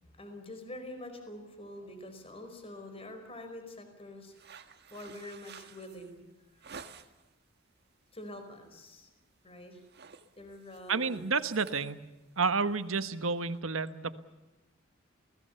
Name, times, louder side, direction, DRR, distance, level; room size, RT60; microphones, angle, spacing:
voice 1, 0.1-6.3 6.5-6.6 8.1-9.1 9.4-9.8 10.4-11.4, left 1 dB, 30° left, 6 dB, 5.0 m, -46 dB
sound 1, 4.3-7.3 7.8-8.1 8.5-8.7 9.0-9.4 9.7-13.6, right 6 dB, 55° right, 1.7 m, -52 dB
voice 2, 10.9-12.0 12.4-14.2, right 4 dB, 85° right, 11 dB, 1.4 m, -30 dB
29.0 x 19.0 x 6.9 m, 1.1 s
head